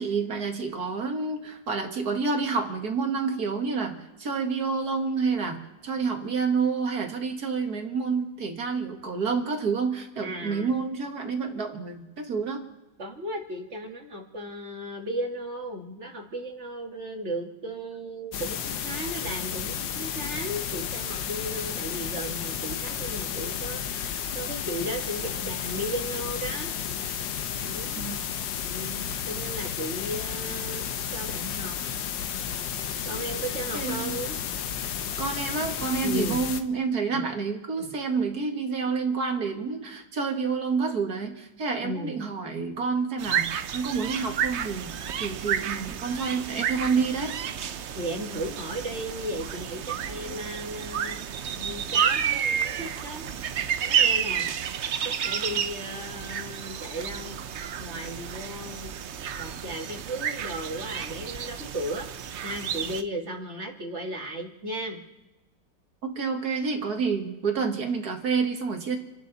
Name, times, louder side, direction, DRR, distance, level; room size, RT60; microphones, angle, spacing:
voice 1, 0.0-12.7 28.0-28.2 33.7-34.1 35.2-47.4 66.0-69.0, right 5 dB, 50° right, 3 dB, 2.3 m, -28 dB
voice 2, 10.2-10.9 13.0-26.7 27.6-28.1 28.5-31.8 33.0-34.4 36.0-36.4 37.1-37.2 37.8-37.9 41.8-42.1 47.9-51.2 51.5-53.3 53.8-54.5 55.0-57.4 57.8-58.9 59.4-62.1 62.4-65.0, right 1 dB, 35° right, 2 dB, 2.2 m, -35 dB
sound 1, 18.3-36.6, left 8 dB, 70° left, 1.6 m, -32 dB
sound 2, 43.2-63.0, right 8 dB, 85° right, 0.6 m, -30 dB
29.0 x 11.5 x 4.1 m, 1.1 s
omnidirectional pair, 2.1 m